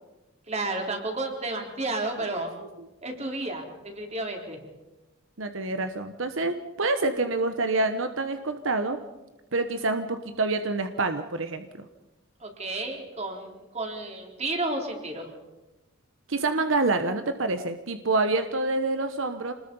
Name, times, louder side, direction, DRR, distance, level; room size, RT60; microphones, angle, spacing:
voice 1, 0.5-2.5 3.0-4.6 12.4-15.3, right 2 dB, 35° right, 2 dB, 3.9 m, -32 dB
voice 2, 5.4-9.0 9.5-11.7 16.3-19.5, right 3 dB, 70° right, 8 dB, 1.1 m, -27 dB
27.0 x 20.5 x 5.5 m, 1.1 s
head